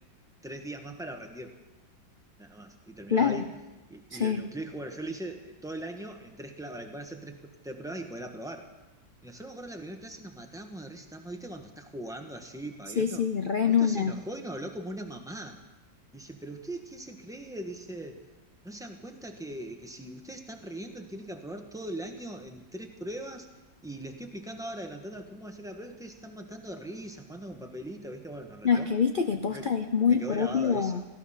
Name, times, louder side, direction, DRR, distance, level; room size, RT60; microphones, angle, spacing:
voice 1, 0.4-1.5 2.4-3.5 3.9-8.7 9.2-13.2 13.6-15.6 16.1-18.2 18.6-23.5 23.8-28.9 29.5-29.7 30.1-31.1, right 1 dB, ahead, 3 dB, 1.2 m, -40 dB
voice 2, 3.1-3.4 4.1-4.4 13.0-14.1 28.6-31.0, left 6 dB, 90° left, 7 dB, 0.4 m, -25 dB
17.5 x 14.5 x 5.7 m, 1.1 s
omnidirectional pair, 2.0 m